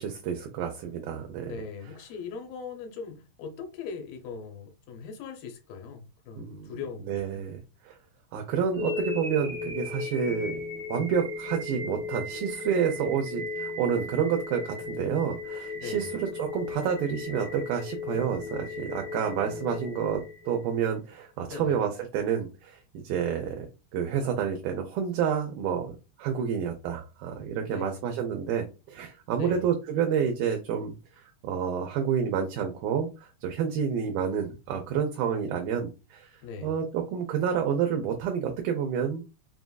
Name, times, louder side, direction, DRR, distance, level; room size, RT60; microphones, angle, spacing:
voice 1, 0.0-1.5 6.4-6.8 7.1-8.0 8.3-10.6 10.9-20.2 20.5-23.7 23.9-25.9 26.2-39.3, right 7 dB, 80° right, 2.3 m, -29 dB
voice 2, 1.4-7.5 15.7-16.1 21.5-21.8 27.7-28.0 29.4-29.7 36.4-36.7, left 5 dB, 75° left, 2.4 m, -40 dB
sound 1, 8.7-20.8, left 4 dB, ahead, 0.7 m, -36 dB
6.9 x 2.4 x 2.2 m
omnidirectional pair, 4.6 m